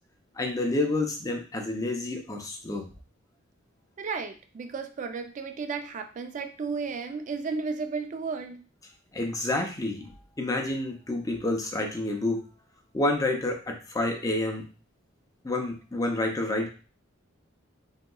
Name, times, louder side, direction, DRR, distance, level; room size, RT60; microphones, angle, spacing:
voice 1, 0.4-2.9 9.1-10.0 10.4-12.4 12.9-14.7 15.4-16.7, left 2 dB, 15° left, 2 dB, 0.5 m, -29 dB
voice 2, 4.0-8.6, right 4 dB, 40° right, 7 dB, 0.3 m, -33 dB
3.4 x 2.8 x 2.3 m, 0.36 s
head